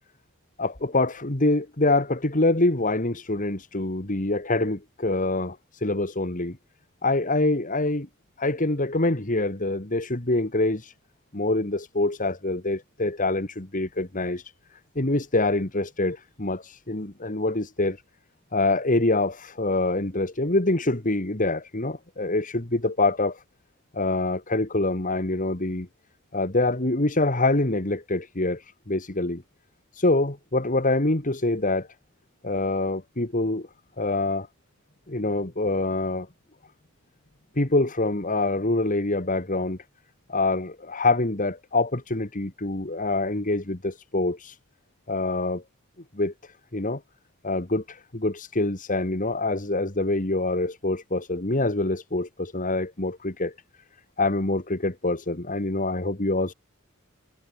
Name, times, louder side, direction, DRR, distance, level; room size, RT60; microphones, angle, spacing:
voice 1, 0.6-6.6 7.0-8.1 8.4-10.9 11.3-14.5 15.0-18.0 18.5-23.4 23.9-25.9 26.3-29.4 29.9-31.9 32.4-33.7 34.0-34.5 35.1-36.3 37.6-39.8 40.3-44.6 45.1-45.6 46.1-47.0 47.4-53.5 54.2-56.5, left 2 dB, 40° left, 2.3 m, -25 dB
head